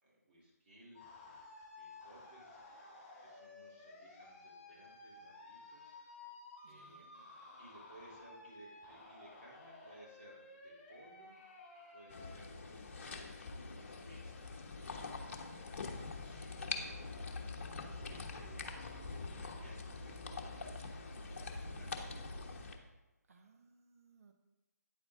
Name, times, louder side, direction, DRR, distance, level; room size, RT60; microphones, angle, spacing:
voice 1, 0.0-2.6 3.2-5.9 6.6-22.4, right 1 dB, 40° right, -5 dB, 3.8 m, -61 dB
sound 1, 0.9-12.3, left 3 dB, 30° left, 3.4 m, -55 dB
voice 2, 6.6-7.1 15.9-16.7 23.3-24.3, right 4 dB, 55° right, 5 dB, 1.1 m, -66 dB
sound 2, 12.1-22.8, left 3 dB, 45° left, 1.2 m, -44 dB
9.5 x 8.3 x 3.8 m, 1.0 s
figure-of-eight pair, 150°, 9 cm